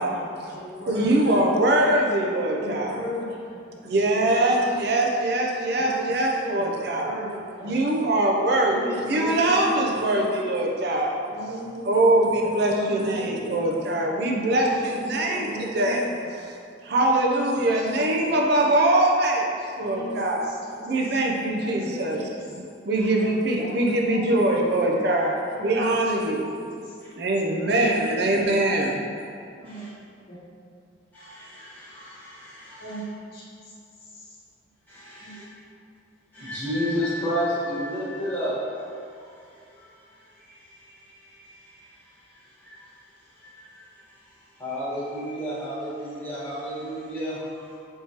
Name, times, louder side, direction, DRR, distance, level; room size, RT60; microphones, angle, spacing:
voice 1, 0.0-1.2 1.4-1.6 2.6-3.6 4.0-4.6 5.8-6.1 6.4-6.7 7.0-7.3 7.6-7.8 8.6-10.3 11.3-13.7 14.4-16.2 17.1-18.1 19.6-20.5 21.0-22.3 23.1-23.7 24.1-24.5 25.5-26.4 26.8-27.0 27.6-27.8 28.2-28.3 29.6-29.9 30.3-30.4 32.8-33.0 33.3-33.7 34.0-34.4 35.2-35.3, right 1 dB, 55° left, -7 dB, 0.9 m, -36 dB
voice 2, 0.9-3.0 3.8-7.2 7.6-11.2 11.9-16.1 16.8-19.5 19.8-20.5 20.9-22.3 22.6-26.5 27.2-29.0, right 1 dB, 55° right, 0 dB, 0.5 m, -23 dB
voice 3, 31.1-33.0 34.9-35.4 36.3-38.6 39.1-39.3 39.7-39.8 40.4-40.6 40.9-41.8 42.6-42.8 43.4-43.8 44.6-47.8, equal, 10° left, -12 dB, 1.3 m, -32 dB
4.3 x 3.6 x 2.8 m, 2.4 s
head